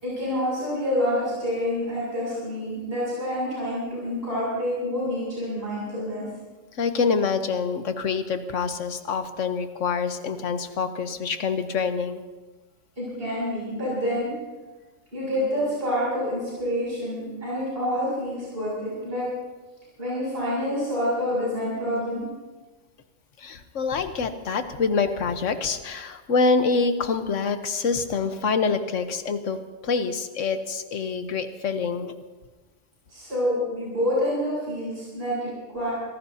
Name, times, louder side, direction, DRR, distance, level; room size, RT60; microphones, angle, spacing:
voice 1, 0.0-6.2 13.0-14.3 15.1-19.3 20.0-22.2 33.1-35.9, equal, 55° right, -8 dB, 7.1 m, -27 dB
voice 2, 6.8-12.2 23.4-29.6 29.8-32.2, left 5 dB, 80° left, 8 dB, 1.4 m, -26 dB
25.0 x 18.0 x 2.8 m, 1.3 s
omnidirectional pair, 1.3 m